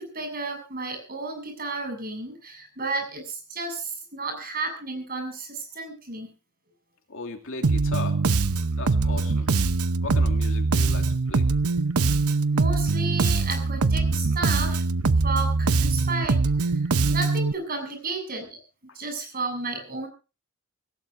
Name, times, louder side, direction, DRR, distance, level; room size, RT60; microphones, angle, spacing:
voice 1, 0.0-6.3 12.2-14.8 15.2-16.7 17.1-18.6 18.9-20.1, right 3 dB, 40° right, 6 dB, 7.3 m, -32 dB
voice 2, 7.1-8.2 8.8-9.5 10.0-11.5 18.9-19.0, left 3 dB, 60° left, 4 dB, 2.7 m, -37 dB
Bass guitar, 7.6-17.5, right 3 dB, 80° right, 0.8 m, -23 dB
26.0 x 16.5 x 2.6 m, 0.33 s
head